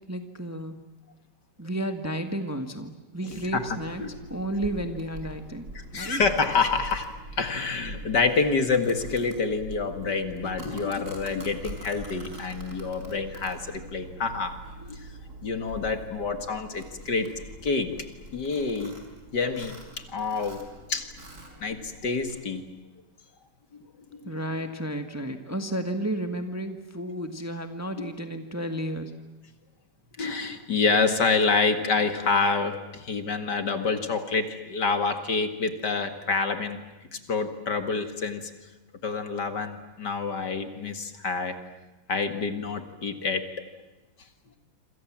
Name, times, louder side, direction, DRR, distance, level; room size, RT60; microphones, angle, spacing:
voice 1, 0.1-0.8 1.6-4.0 4.3-5.7 5.9-6.2 24.2-29.1, right 1 dB, 10° right, 7 dB, 1.7 m, -32 dB
voice 2, 3.3-4.1 5.7-15.0 15.4-17.3 17.6-17.9 18.3-19.0 19.3-19.8 20.1-21.1 21.6-22.6 24.1-24.4 28.0-28.1 30.2-36.8 37.1-38.5 39.0-41.6 42.1-43.4, left 4 dB, 55° left, 8 dB, 2.6 m, -27 dB
Domestic sounds home sounds, 3.3-22.4, right 1 dB, 40° right, 5.4 m, -44 dB
27.0 x 26.5 x 7.5 m, 1.1 s
omnidirectional pair, 2.2 m